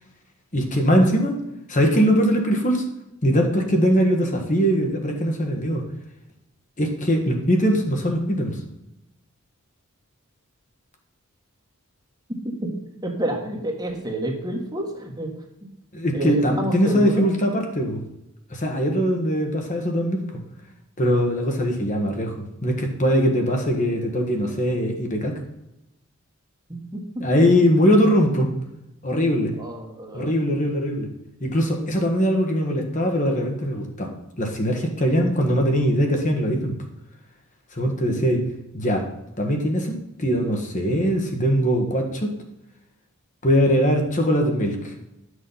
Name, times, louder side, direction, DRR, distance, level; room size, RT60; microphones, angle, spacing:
voice 1, 0.5-1.4 1.7-2.8 3.2-5.8 6.8-8.6 15.9-18.0 18.5-20.2 21.0-25.4 27.2-28.5 29.0-29.5 30.1-31.1 31.4-36.7 37.7-38.4 38.7-39.1 39.4-42.3 43.4-44.9, equal, 35° left, 2 dB, 1.5 m, -21 dB
voice 2, 13.0-15.3 15.6-15.7 16.1-17.3 26.9-27.2 29.6-30.3, right 1 dB, 20° right, 1 dB, 1.5 m, -29 dB
11.0 x 6.4 x 5.6 m, 0.88 s
head